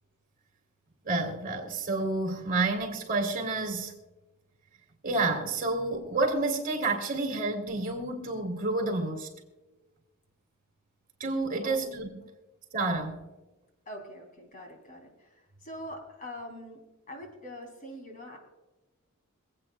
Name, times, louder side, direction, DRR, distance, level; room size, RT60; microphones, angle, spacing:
voice 1, 1.0-3.9 5.0-9.3 11.2-12.1 12.7-13.2, right 3 dB, 40° right, 3.1 m, -29 dB
voice 2, 13.8-16.8 17.1-18.4, left 1 dB, 40° left, 3.3 m, -43 dB
26.5 x 8.9 x 2.3 m
head